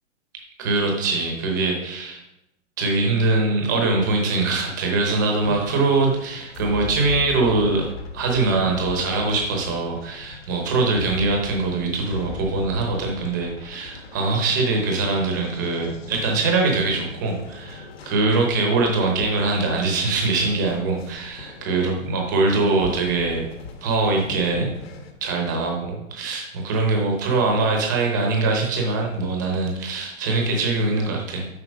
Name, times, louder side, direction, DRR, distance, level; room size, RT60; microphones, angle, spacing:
voice 1, 0.6-2.2 2.8-23.5 23.8-24.8 25.2-31.5, right 3 dB, 15° right, 1 dB, 0.8 m, -22 dB
sound 1, 5.4-25.1, left 5 dB, 50° left, 1.3 m, -39 dB
8.0 x 5.7 x 5.0 m, 0.88 s
hypercardioid pair, 180°, 40 cm